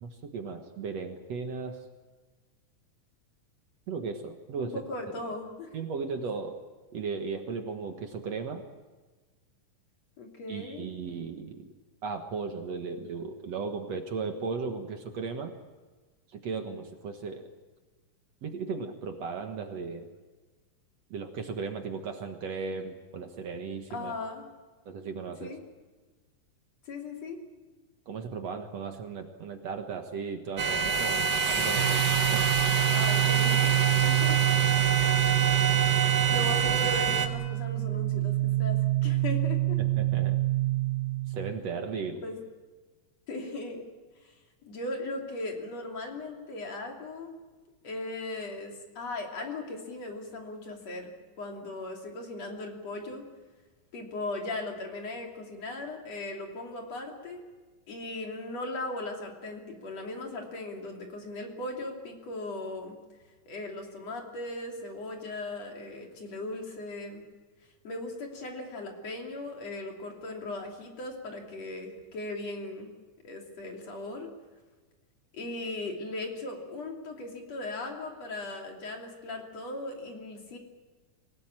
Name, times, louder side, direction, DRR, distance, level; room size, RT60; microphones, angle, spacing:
voice 1, 0.0-1.8 3.9-4.7 5.1-5.2 5.7-6.6 6.9-8.7 10.5-11.7 12.0-15.5 16.3-17.5 18.4-20.1 21.1-24.1 24.9-25.5 28.1-32.5 39.8-40.4 41.3-42.2, right 5 dB, 60° right, 5 dB, 2.4 m, -36 dB
voice 2, 4.6-5.7 10.2-10.9 23.9-24.5 25.4-25.6 26.9-27.4 32.9-34.4 36.3-39.8 42.2-42.4 43.3-43.9 44.2-44.4 44.6-47.4 47.8-53.2 53.9-57.4 57.9-63.0 63.5-67.2 67.8-72.9 73.2-74.3 75.3-80.6, left 2 dB, 50° left, 1 dB, 4.1 m, -38 dB
sound 1, 30.6-37.3, right 5 dB, 40° right, 1.8 m, -26 dB
sound 2, 31.7-41.5, right 17 dB, 80° right, 2.6 m, -27 dB
25.5 x 17.5 x 8.9 m, 1.3 s
omnidirectional pair, 3.8 m